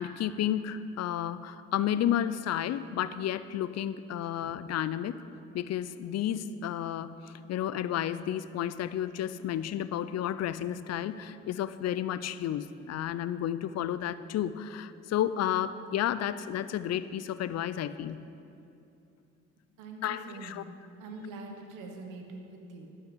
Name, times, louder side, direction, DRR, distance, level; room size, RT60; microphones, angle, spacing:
voice 1, 0.0-5.2 5.5-18.2 20.0-20.6, left 10 dB, 55° left, 14 dB, 0.6 m, -32 dB
voice 2, 19.8-20.7 21.0-22.9, right 2 dB, 75° right, 3 dB, 1.5 m, -43 dB
12.0 x 5.7 x 7.9 m, 2.6 s
supercardioid pair, 60°, 31 cm